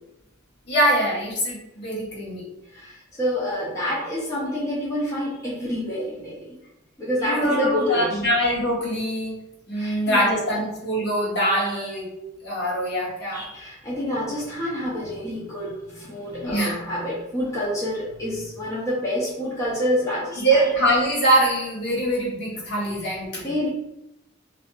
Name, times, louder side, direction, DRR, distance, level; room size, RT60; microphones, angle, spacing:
voice 1, 0.7-2.4 7.2-9.3 9.7-12.0 12.4-13.5 16.4-16.7 20.4-23.7, right 1 dB, 55° left, -5 dB, 0.9 m, -23 dB
voice 2, 2.7-6.6 7.0-8.2 9.7-10.6 13.3-20.7 23.0-23.7, left 1 dB, 15° left, -7 dB, 0.5 m, -28 dB
2.6 x 2.4 x 2.2 m, 0.88 s
head